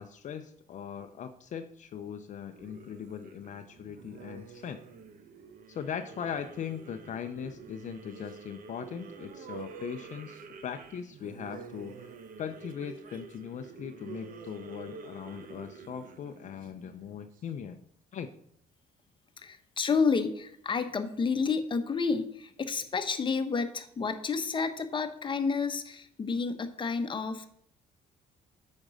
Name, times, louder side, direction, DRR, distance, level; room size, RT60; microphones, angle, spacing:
voice 1, 0.0-4.8 5.7-17.8 18.1-18.3, left 8 dB, 45° left, 8 dB, 0.6 m, -40 dB
sound 1, 2.5-17.4, right 5 dB, 55° right, 1.0 m, -48 dB
voice 2, 19.4-27.5, left 5 dB, 30° left, 9 dB, 1.0 m, -30 dB
8.8 x 5.3 x 6.3 m, 0.67 s
cardioid pair, 110°, 17 cm